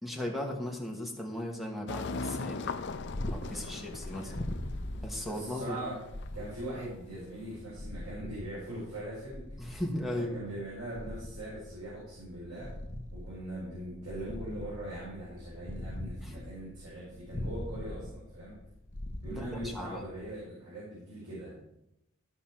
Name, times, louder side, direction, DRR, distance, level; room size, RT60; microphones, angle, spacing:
voice 1, 0.0-2.7 3.3-4.3 5.0-5.8 9.6-10.4 16.2-16.3 19.3-20.0, left 1 dB, ahead, 0 dB, 1.4 m, -37 dB
sound 1, 1.9-7.5, left 4 dB, 55° left, 0.5 m, -40 dB
Purr, 2.9-20.3, left 1 dB, 35° left, 0.9 m, -42 dB
voice 2, 3.4-4.4 5.2-6.0 6.3-9.5 10.1-12.7 13.1-18.6 19.2-21.5, right 1 dB, 85° right, -8 dB, 4.4 m, -41 dB
13.5 x 5.6 x 4.4 m, 0.82 s
head